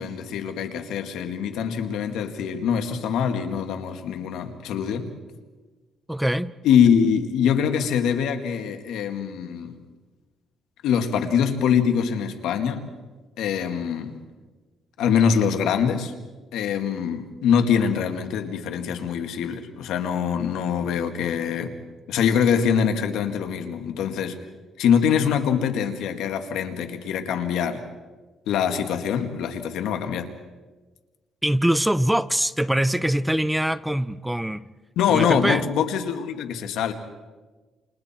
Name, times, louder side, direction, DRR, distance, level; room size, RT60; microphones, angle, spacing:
voice 1, 0.0-5.1 6.6-9.7 10.8-12.8 13.4-14.2 15.0-16.1 16.5-21.7 22.1-24.4 24.8-27.8 28.5-30.3 35.0-36.9, left 7 dB, 85° left, 2.2 m, -23 dB
voice 2, 6.1-6.5 31.4-34.7 35.1-35.7, right 1 dB, 5° right, 0.7 m, -23 dB
29.5 x 28.5 x 4.5 m
cardioid pair, 90°, 0 cm